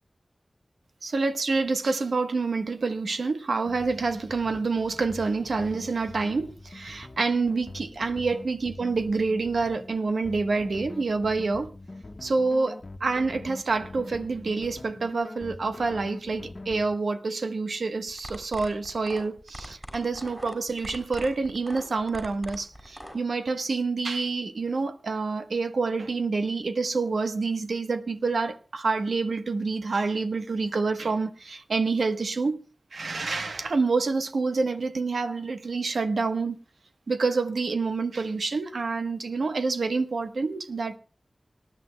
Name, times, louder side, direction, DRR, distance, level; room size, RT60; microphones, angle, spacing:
voice 1, 1.0-11.7 12.2-32.6 32.9-36.6 37.1-41.0, right 4 dB, 90° right, 1.1 m, -27 dB
sound 1, 3.6-17.0, left 2 dB, 50° left, 1.2 m, -43 dB
sound 2, 18.1-23.1, equal, 10° right, 6.6 m, -41 dB
25.5 x 11.0 x 2.2 m
wide cardioid pair, 65°, 0 cm